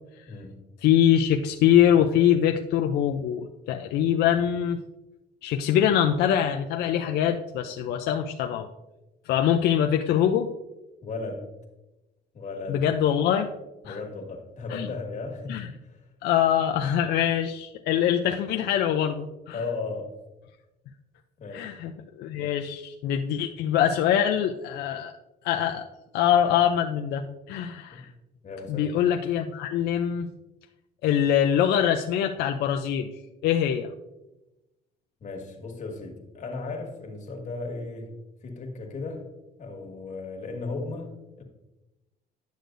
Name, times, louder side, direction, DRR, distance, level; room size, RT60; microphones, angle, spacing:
voice 1, 0.3-0.7 11.0-11.5 12.3-12.9 13.8-16.1 19.5-20.1 21.4-21.7 27.9-28.1 28.4-28.9 35.2-38.1 38.4-39.3 39.6-41.4, left 3 dB, 45° left, 2 dB, 1.6 m, -36 dB
voice 2, 0.8-4.8 5.4-8.7 9.3-10.5 12.7-13.5 13.9-14.0 14.7-14.9 15.5-15.7 16.2-19.6 21.5-25.1 25.4-25.9 26.1-28.1 28.7-30.3 31.0-33.1 33.4-33.9, left 9 dB, 75° left, 5 dB, 0.5 m, -23 dB
10.5 x 6.5 x 2.6 m, 1.0 s
cardioid pair, 110°, 17 cm